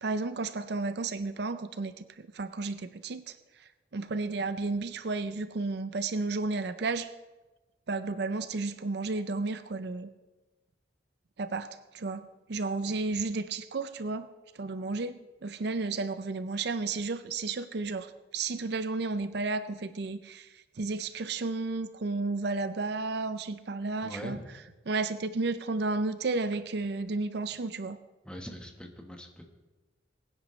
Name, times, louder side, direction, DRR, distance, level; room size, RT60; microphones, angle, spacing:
voice 1, 0.0-3.3 3.9-7.1 7.9-10.1 11.4-14.3 14.6-15.1 15.4-20.5 20.8-24.4 24.9-28.0, right 3 dB, 65° right, 12 dB, 0.6 m, -32 dB
voice 2, 24.0-24.4 28.2-29.5, equal, 5° left, 3 dB, 1.3 m, -42 dB
22.0 x 9.7 x 3.2 m, 1.2 s
head